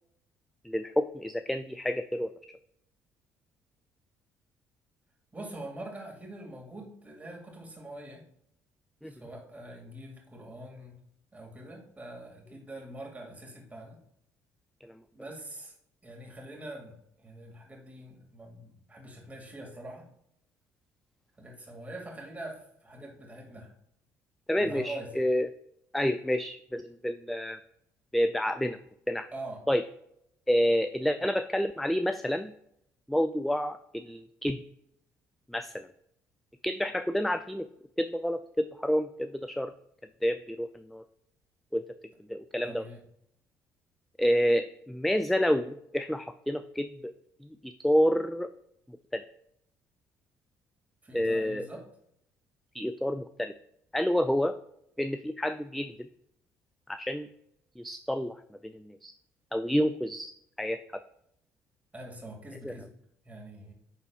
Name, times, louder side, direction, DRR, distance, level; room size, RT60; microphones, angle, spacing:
voice 1, 0.6-2.6 9.0-9.1 14.8-14.9 24.5-25.5 25.9-27.6 28.1-28.8 29.1-29.3 29.7-29.8 30.5-32.5 33.1-34.6 35.5-35.8 36.6-37.7 38.0-39.7 40.2-41.0 41.7-41.8 42.3-42.8 44.2-47.1 47.4-48.5 48.9-49.2 51.1-51.6 52.7-53.5 53.9-54.5 55.0-56.1 56.9-57.3 57.8-58.4 58.6-59.1 59.5-60.3 60.6-60.8 62.6-62.7, equal, ahead, 10 dB, 0.3 m, -29 dB
voice 2, 5.3-8.2 9.1-11.0 11.3-14.0 15.1-15.7 16.0-20.1 21.4-23.7 24.6-25.2 29.3-29.6 42.6-43.0 51.0-51.8 61.9-62.9 63.2-63.7, right 1 dB, 20° right, 0 dB, 2.3 m, -44 dB
9.9 x 4.1 x 2.4 m, 0.74 s
hypercardioid pair, 55°, 8 cm